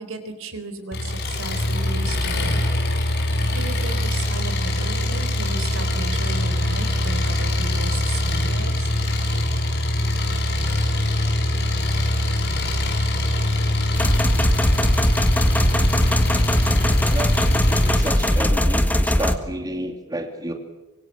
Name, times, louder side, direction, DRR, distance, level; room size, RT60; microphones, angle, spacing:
voice 1, 0.0-2.6 3.5-8.9, right 2 dB, 65° right, 9 dB, 4.1 m, -35 dB
Engine, 0.9-18.4, left 1 dB, 50° left, 6.0 m, -23 dB
sound 1, 13.9-19.3, equal, 10° left, 1.7 m, -20 dB
voice 2, 17.0-20.5, right 1 dB, 20° right, 4 dB, 2.5 m, -31 dB
25.5 x 24.0 x 7.4 m, 1.1 s
head